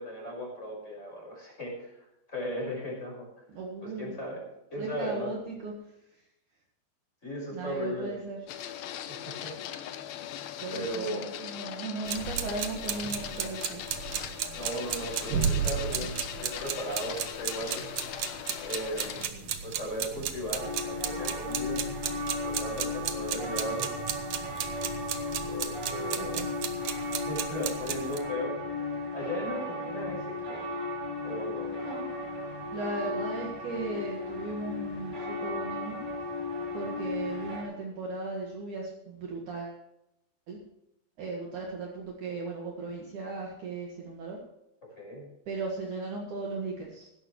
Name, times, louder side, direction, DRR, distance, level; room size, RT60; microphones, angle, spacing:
voice 1, 0.0-3.3 3.8-4.4 4.7-5.3 7.2-8.2 9.1-9.6 10.7-11.3 14.5-17.8 18.6-21.8 22.3-23.9 25.4-26.4 27.1-28.5 29.1-30.2 30.4-30.7 31.2-31.7 33.0-33.2 45.0-45.3, equal, 15° left, -1 dB, 5.7 m, -37 dB
voice 2, 3.5-4.2 4.8-5.7 7.5-8.4 10.6-13.8 26.1-26.5 31.8-32.1 32.7-36.0 36.7-39.8 40.5-40.6 41.2-44.4 45.5-47.1, right 3 dB, 55° right, -2 dB, 2.9 m, -37 dB
Printer, 8.5-19.3, left 11 dB, 75° left, 2.5 m, -40 dB
sound 1, 12.1-28.2, right 8 dB, 80° right, 1.5 m, -34 dB
sound 2, 20.6-37.6, left 2 dB, 10° right, 3.2 m, -35 dB
16.5 x 12.5 x 3.2 m, 0.86 s
omnidirectional pair, 4.7 m